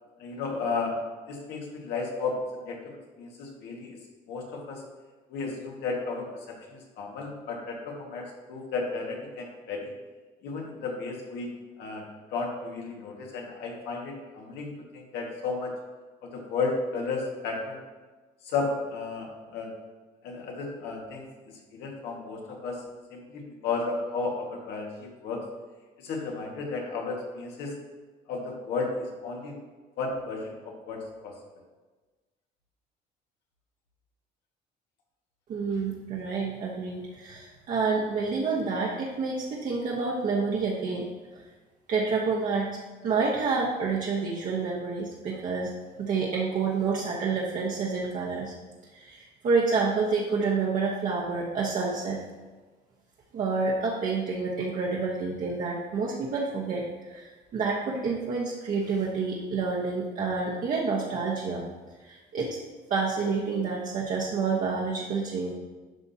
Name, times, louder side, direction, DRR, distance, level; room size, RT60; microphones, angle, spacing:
voice 1, 0.2-0.9 1.3-4.0 4.3-4.8 5.3-9.9 10.4-11.5 11.8-12.1 12.3-15.7 16.2-17.8 18.4-19.7 20.2-22.8 23.1-25.4 26.0-27.7 28.3-29.6 30.0-31.3, left 4 dB, 85° left, 0 dB, 1.7 m, -33 dB
voice 2, 35.5-41.1 41.9-42.7 43.0-48.5 48.9-52.2 53.3-61.6 62.0-62.6 62.9-65.5, right 4 dB, 55° right, -4 dB, 1.1 m, -28 dB
11.0 x 5.9 x 2.8 m, 1.3 s
cardioid pair, 110°, 17 cm